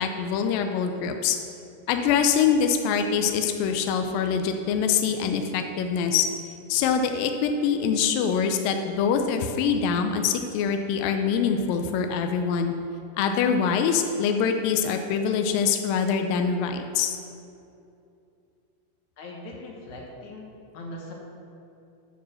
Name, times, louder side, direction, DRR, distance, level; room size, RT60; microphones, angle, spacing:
voice 1, 0.0-1.4 1.9-6.3 6.7-12.7 13.2-17.2, left 6 dB, 80° left, 5 dB, 2.2 m, -24 dB
voice 2, 19.2-21.1, left 1 dB, 65° left, -1 dB, 2.2 m, -40 dB
9.5 x 6.3 x 6.4 m, 2.7 s
omnidirectional pair, 4.4 m